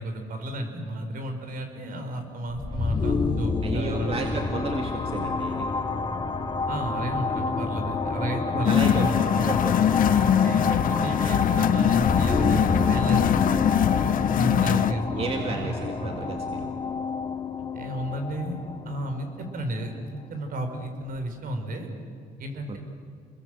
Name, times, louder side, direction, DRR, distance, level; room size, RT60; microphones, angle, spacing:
voice 1, 0.0-4.5 6.7-9.6 10.1-13.6 14.4-16.3 17.6-18.6 18.8-21.9 22.4-22.8, right 1 dB, 55° right, 6 dB, 4.7 m, -33 dB
sound 1, 2.5-20.2, left 4 dB, 25° left, 1.9 m, -28 dB
voice 2, 3.6-5.7 8.7-9.7 14.7-16.7 22.7-22.8, right 4 dB, 35° right, 4 dB, 2.1 m, -33 dB
sound 2, 8.6-14.9, left 10 dB, 55° left, 0.8 m, -23 dB
28.0 x 21.5 x 7.7 m, 2.2 s
cardioid pair, 110°, 17 cm